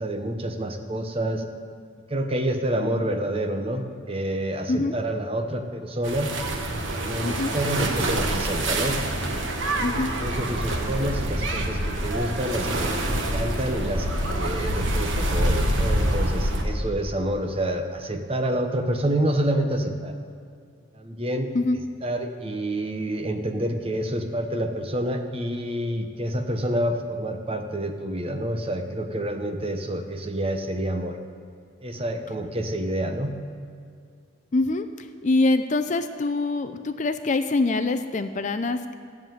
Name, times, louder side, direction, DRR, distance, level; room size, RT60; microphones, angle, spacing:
voice 1, 0.0-1.4 2.1-6.3 7.0-9.0 10.0-20.1 20.9-21.5 22.0-31.2 31.8-33.3, right 1 dB, 25° right, 5 dB, 0.9 m, -28 dB
sound 1, 6.0-16.6, right 1 dB, 60° right, 1.4 m, -26 dB
voice 2, 7.2-7.5 9.8-10.1 21.5-21.8 34.5-38.9, left 2 dB, 35° left, 9 dB, 0.4 m, -24 dB
14.0 x 7.3 x 9.2 m, 2.3 s
head